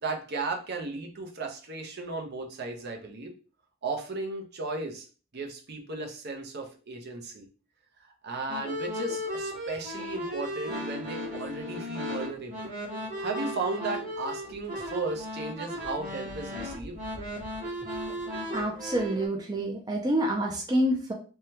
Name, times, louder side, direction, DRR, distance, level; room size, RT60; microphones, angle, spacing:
voice 1, 0.0-3.3 3.8-5.1 5.3-7.5 8.2-12.7 13.2-17.0, right 3 dB, 55° right, 2 dB, 0.7 m, -35 dB
sound 1, 8.5-19.3, equal, 40° right, 1.5 m, -36 dB
voice 2, 18.5-21.1, right 1 dB, 20° right, 0 dB, 0.4 m, -27 dB
3.5 x 2.2 x 2.8 m, 0.37 s
head